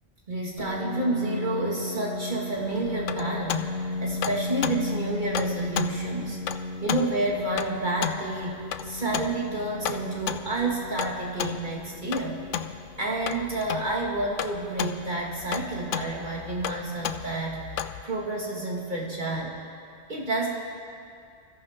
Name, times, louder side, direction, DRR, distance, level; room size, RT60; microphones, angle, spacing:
voice 1, 0.3-6.4 6.8-12.4 13.0-17.6 18.0-19.6 20.1-20.5, right 2 dB, 40° right, -3 dB, 1.9 m, -29 dB
Piano, 0.6-16.0, left 2 dB, 55° left, 1.6 m, -36 dB
sound 1, 2.5-18.0, left 9 dB, 80° left, 1.0 m, -34 dB
24.5 x 14.0 x 3.6 m, 2.3 s
omnidirectional pair, 1.2 m